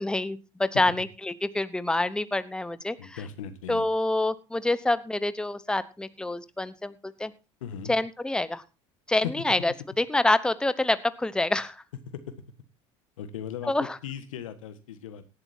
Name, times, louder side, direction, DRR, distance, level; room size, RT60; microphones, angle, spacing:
voice 1, 0.0-3.2 3.7-7.3 7.9-8.6 9.1-11.8 13.7-14.0, left 2 dB, 5° left, 14 dB, 0.9 m, -27 dB
voice 2, 3.0-3.9 7.6-7.9 9.2-9.3 12.1-12.4 13.2-13.7 14.0-15.2, left 9 dB, 80° left, 11 dB, 1.5 m, -37 dB
18.0 x 11.5 x 2.8 m, 0.29 s
hypercardioid pair, 75°, 17 cm